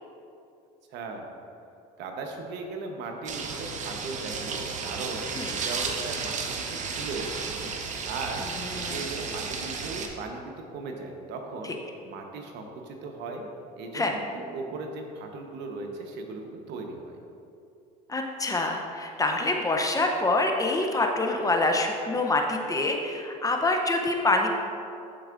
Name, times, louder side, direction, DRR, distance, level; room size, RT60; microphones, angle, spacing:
voice 1, 0.9-1.3 2.0-11.7 12.0-13.5 13.8-17.2, right 3 dB, 60° right, 3 dB, 1.0 m, -38 dB
sound 1, 3.3-10.1, right 5 dB, 40° right, 0.8 m, -33 dB
voice 2, 18.1-24.5, left 2 dB, 15° left, 2 dB, 0.7 m, -26 dB
11.5 x 4.5 x 2.5 m, 2.6 s
supercardioid pair, 90°, 20 cm